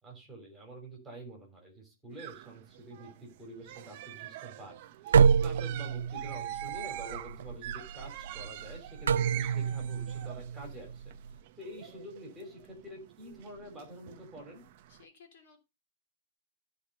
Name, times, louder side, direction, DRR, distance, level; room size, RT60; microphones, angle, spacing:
voice 1, 0.0-4.7 5.1-11.1 11.6-14.6, right 1 dB, 5° right, -1 dB, 3.2 m, -47 dB
sound 1, 2.1-15.0, right 12 dB, 30° right, 0.7 m, -45 dB
sound 2, 5.1-11.4, right 6 dB, 85° right, 0.5 m, -28 dB
voice 2, 14.9-15.6, left 5 dB, 40° left, 4 dB, 3.2 m, -57 dB
13.0 x 4.4 x 6.5 m, 0.26 s
hypercardioid pair, 180°, 0 cm